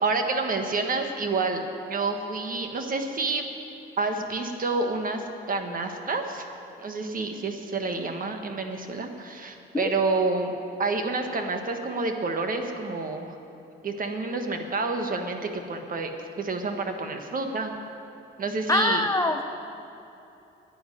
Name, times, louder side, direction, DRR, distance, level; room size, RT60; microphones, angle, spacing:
voice 1, 0.0-3.4 4.0-6.5 6.8-10.5 10.8-13.4 13.8-16.1 16.4-17.7 18.4-19.0, right 3 dB, 45° right, 5 dB, 1.5 m, -28 dB
voice 2, 18.7-19.4, left 2 dB, 15° left, 6 dB, 0.7 m, -24 dB
10.5 x 10.0 x 9.2 m, 2.8 s
cardioid pair, 90°, 20 cm